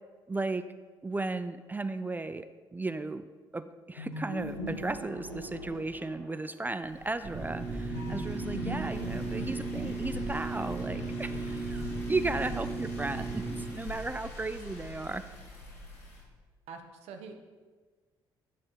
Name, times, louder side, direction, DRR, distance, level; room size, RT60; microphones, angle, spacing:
voice 1, 0.3-0.6 1.0-3.3 3.5-15.2, right 3 dB, 15° right, 11 dB, 0.3 m, -35 dB
sound 1, 4.0-6.5 7.9-10.4, right 1 dB, 90° left, 1.1 m, -40 dB
sound 2, 6.8-16.2, left 2 dB, 60° left, 1.7 m, -44 dB
sound 3, 7.3-13.6, right 3 dB, 45° right, 1.5 m, -36 dB
voice 2, 16.7-17.3, right 5 dB, 65° right, 5 dB, 0.8 m, -45 dB
9.6 x 3.7 x 4.2 m, 1.4 s
hypercardioid pair, 45°, 12 cm